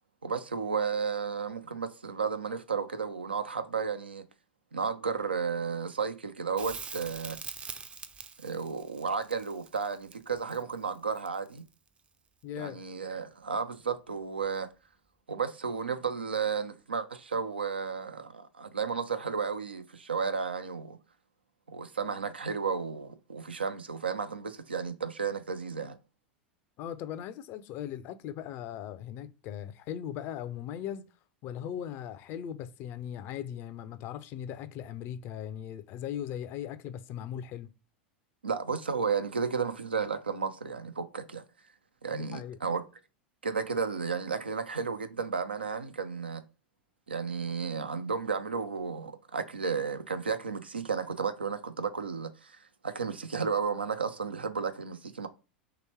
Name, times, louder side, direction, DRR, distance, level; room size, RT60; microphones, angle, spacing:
voice 1, 0.2-4.2 4.7-7.4 8.4-11.6 12.6-14.7 15.3-21.0 21.7-26.0 38.4-41.4 42.0-42.8 43.4-46.4 47.1-55.3, right 5 dB, 85° right, 0.5 m, -33 dB
Crackle, 6.6-11.7 14.4-14.5, right 5 dB, 20° right, 0.4 m, -44 dB
voice 2, 12.4-12.8 26.8-31.0 31.4-37.7 42.1-42.6, left 10 dB, 45° left, 0.5 m, -39 dB
3.1 x 3.0 x 4.4 m
figure-of-eight pair, 85°, 5 cm